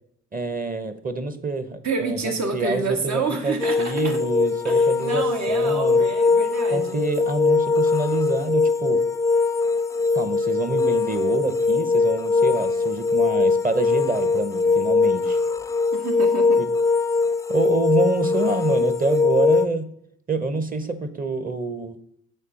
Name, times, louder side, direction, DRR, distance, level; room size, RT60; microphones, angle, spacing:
voice 1, 0.3-6.0 6.7-9.0 10.1-15.4 16.6-16.7 17.5-19.9 20.3-22.0, right 3 dB, 30° right, 11 dB, 0.8 m, -27 dB
voice 2, 1.8-4.2 4.6-7.0 15.9-16.6, right 3 dB, 70° right, 3 dB, 1.6 m, -28 dB
sound 1, 3.6-19.7, left 4 dB, 10° left, 0.4 m, -21 dB
6.7 x 4.3 x 5.0 m, 0.69 s
cardioid pair, 75°, 29 cm